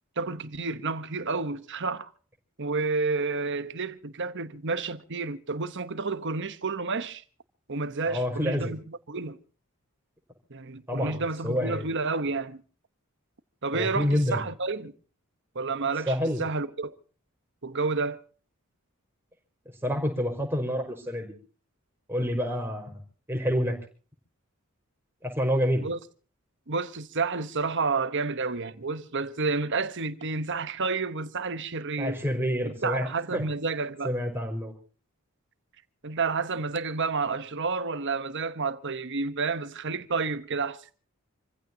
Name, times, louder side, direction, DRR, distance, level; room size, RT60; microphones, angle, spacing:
voice 1, 0.2-2.1 2.6-7.2 7.7-9.4 10.5-12.6 13.6-14.9 15.5-17.0 17.6-18.2 25.8-26.0 26.7-32.2 32.6-34.1 36.0-40.8, right 4 dB, 55° right, 1.2 m, -30 dB
voice 2, 8.1-8.8 10.9-11.9 13.7-14.4 16.1-16.4 19.8-21.3 22.1-23.0 23.3-23.7 25.2-25.9 32.0-33.4 34.0-34.7, equal, 10° right, 5.3 m, -28 dB
27.5 x 15.5 x 2.9 m
head